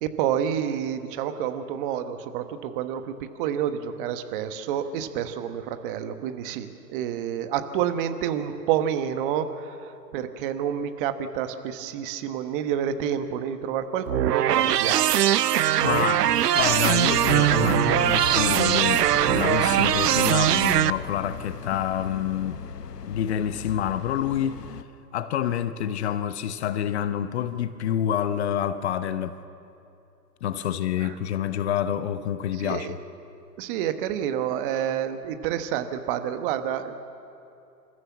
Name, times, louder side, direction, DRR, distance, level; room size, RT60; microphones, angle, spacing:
voice 1, 0.0-15.2 31.0-31.2 32.5-32.9 33.6-36.9, right 9 dB, 30° right, 1.3 m, -29 dB
sound 1, 14.1-20.9, right 11 dB, 70° right, 0.7 m, -21 dB
voice 2, 15.8-22.6 23.1-24.6 25.1-29.4 30.4-32.9, left 10 dB, 40° left, 0.9 m, -27 dB
sound 2, 16.6-24.8, left 7 dB, 70° left, 1.2 m, -37 dB
28.0 x 14.5 x 7.4 m
hypercardioid pair, 125°, 49 cm